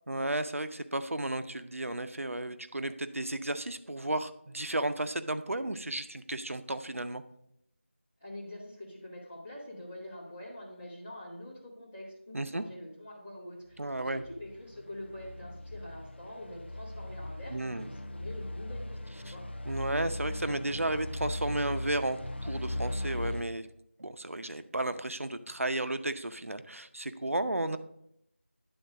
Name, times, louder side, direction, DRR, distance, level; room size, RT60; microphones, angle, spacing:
voice 1, 0.1-7.2 12.3-12.6 13.8-14.2 17.5-17.9 19.3-19.4 19.6-23.7 24.0-27.8, right 1 dB, 90° right, 10 dB, 0.7 m, -33 dB
voice 2, 8.2-19.4, left 1 dB, 10° left, -8 dB, 0.9 m, -45 dB
sound 1, 13.7-23.4, left 1 dB, 55° left, 0.6 m, -39 dB
10.0 x 3.9 x 4.8 m, 0.77 s
figure-of-eight pair, 175°, 7 cm